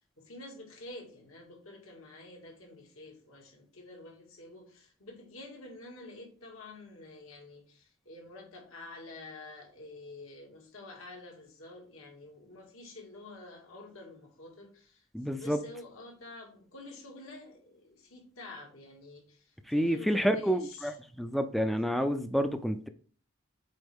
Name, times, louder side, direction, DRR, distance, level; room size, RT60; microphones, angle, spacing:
voice 1, 0.2-21.0, left 2 dB, 70° left, 2.0 m, -49 dB
voice 2, 15.1-15.6 19.7-22.9, equal, ahead, 0.3 m, -29 dB
7.8 x 4.1 x 3.5 m
head